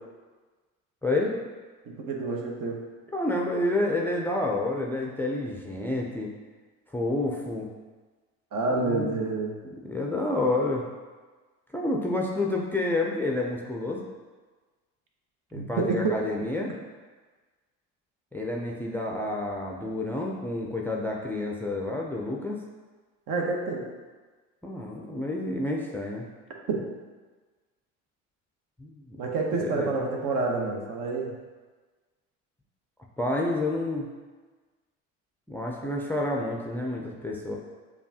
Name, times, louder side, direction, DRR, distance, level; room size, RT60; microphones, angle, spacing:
voice 1, 1.0-1.4 3.1-6.3 6.9-7.7 8.7-9.2 9.8-10.9 11.7-14.1 15.5-16.7 18.3-22.6 24.6-26.3 28.8-29.2 29.6-29.9 33.2-34.1 35.5-37.5, left 2 dB, 5° left, -1 dB, 0.5 m, -29 dB
voice 2, 1.9-2.8 8.5-9.5 15.5-16.2 23.3-23.9 26.7-26.8 29.2-31.3, right 3 dB, 55° right, 0 dB, 1.0 m, -28 dB
6.9 x 2.4 x 2.8 m, 1.4 s
hypercardioid pair, 70°, 38 cm